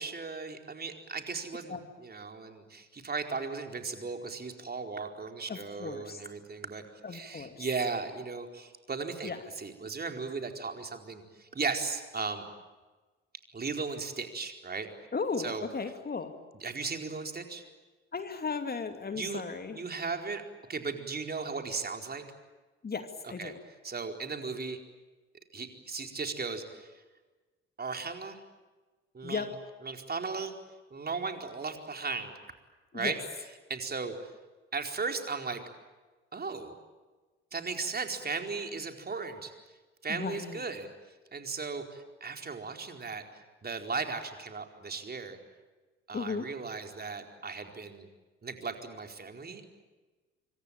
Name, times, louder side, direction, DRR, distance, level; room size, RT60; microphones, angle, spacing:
voice 1, 0.0-6.8 7.1-12.4 13.5-14.9 15.4-15.7 16.6-17.6 19.2-19.4 19.7-20.4 20.7-22.2 23.4-23.5 23.8-24.8 25.5-26.9 27.8-28.4 29.1-29.5 29.8-30.5 30.9-32.3 32.9-33.2 33.7-34.3 34.7-35.6 36.3-36.7 37.5-39.5 40.0-40.9 41.3-43.3 43.6-45.4 46.1-48.1 48.4-49.7, right 4 dB, 25° right, 4 dB, 4.5 m, -36 dB
voice 2, 5.5-6.2 7.0-7.7 9.2-9.4 15.1-16.3 18.1-19.8 22.8-23.6 29.2-29.5 32.9-33.1 40.1-40.6 46.1-46.5, left 5 dB, 25° left, 7 dB, 2.6 m, -36 dB
25.5 x 25.0 x 9.0 m, 1.3 s
figure-of-eight pair, 55°, 34 cm